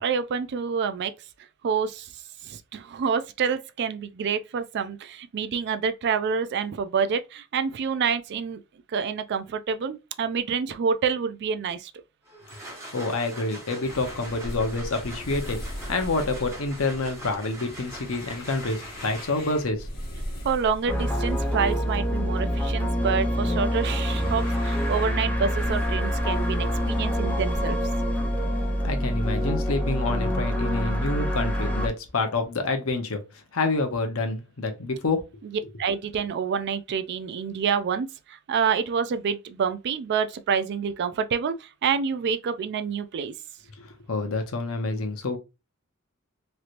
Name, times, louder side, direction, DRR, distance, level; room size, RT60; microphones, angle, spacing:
voice 1, 0.0-1.1 1.6-2.1 2.4-8.6 8.9-11.9 20.4-27.8 35.8-43.3, right 6 dB, 55° right, 0.4 m, -27 dB
sound 1, 12.3-19.6, right 1 dB, 15° right, 1.2 m, -43 dB
voice 2, 12.9-19.9 28.8-33.2 33.5-35.2 43.8-45.4, left 3 dB, 70° left, 0.8 m, -28 dB
sound 2, 13.8-29.7, equal, 50° left, 1.1 m, -40 dB
sound 3, 20.9-31.9, equal, 5° left, 0.6 m, -26 dB
3.2 x 2.8 x 2.5 m
head